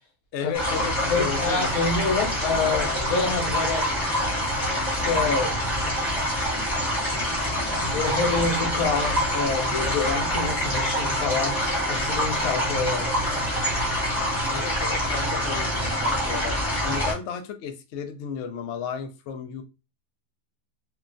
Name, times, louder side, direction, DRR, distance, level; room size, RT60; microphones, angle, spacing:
voice 1, 0.3-1.6 14.5-19.6, left 7 dB, 90° left, 0.6 m, -34 dB
sound 1, 0.5-17.1, equal, 20° left, 0.8 m, -26 dB
voice 2, 1.1-3.9 4.9-5.6 7.8-11.6 11.9-13.5, left 4 dB, 70° left, 1.0 m, -27 dB
3.0 x 2.2 x 2.5 m
omnidirectional pair, 1.8 m